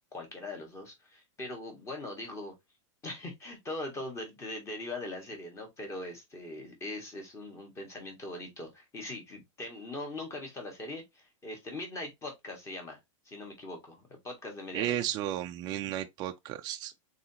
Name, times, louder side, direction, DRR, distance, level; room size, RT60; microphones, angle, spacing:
voice 1, 0.1-2.5 3.0-13.0 13.2-14.9 16.6-16.9, left 2 dB, 15° left, 1.6 m, -41 dB
voice 2, 14.7-16.9, right 12 dB, 25° right, 0.4 m, -33 dB
3.9 x 3.9 x 2.8 m
supercardioid pair, 155°, 17 cm